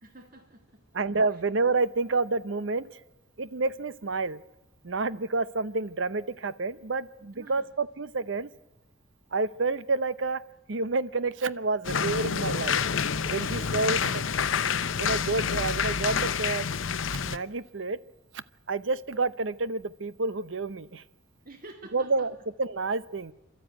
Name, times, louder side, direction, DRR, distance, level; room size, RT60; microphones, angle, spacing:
voice 1, 0.0-0.8 7.3-7.6 13.4-13.9 21.4-22.1, right 2 dB, 45° right, 4 dB, 1.7 m, -48 dB
voice 2, 0.9-3.0 3.4-4.4 4.8-8.5 9.3-10.4 10.7-12.8 13.3-14.2 14.9-16.7 17.2-18.0 18.3-21.0 21.9-23.3, right 3 dB, 70° right, 15 dB, 0.7 m, -29 dB
sound 1, 11.8-17.4, left 6 dB, 75° left, 0.7 m, -28 dB
28.5 x 13.0 x 9.1 m, 1.0 s
head